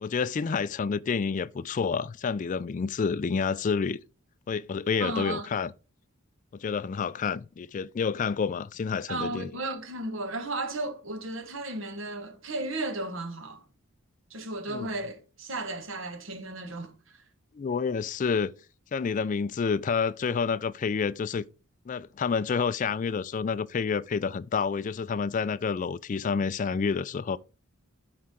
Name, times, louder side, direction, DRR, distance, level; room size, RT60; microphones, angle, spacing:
voice 1, 0.0-4.0 4.5-5.7 6.5-9.5 14.7-14.9 17.5-18.5 18.9-21.5 21.9-27.4, left 5 dB, 35° left, 0.3 m, -29 dB
voice 2, 5.0-5.5 9.1-13.6 14.3-17.2, right 2 dB, 65° right, 1.6 m, -34 dB
12.5 x 4.8 x 3.8 m
head